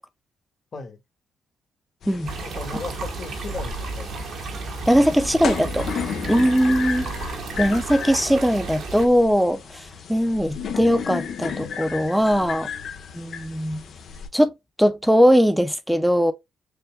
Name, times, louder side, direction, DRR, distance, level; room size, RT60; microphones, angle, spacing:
sound 1, 2.0-14.3, left 6 dB, 60° left, 1.0 m, -34 dB
voice 1, 2.3-4.1 4.9-5.6, left 3 dB, 40° left, 1.7 m, -37 dB
sound 2, 2.3-9.1, right 3 dB, 65° right, 1.3 m, -33 dB
voice 2, 4.9-5.8 6.3-7.1 7.6-9.8 10.1-12.7 13.2-13.8 14.3-14.5 14.8-16.3, equal, ahead, 0.8 m, -20 dB
6.8 x 2.5 x 2.2 m
cardioid pair, 90°, 0 cm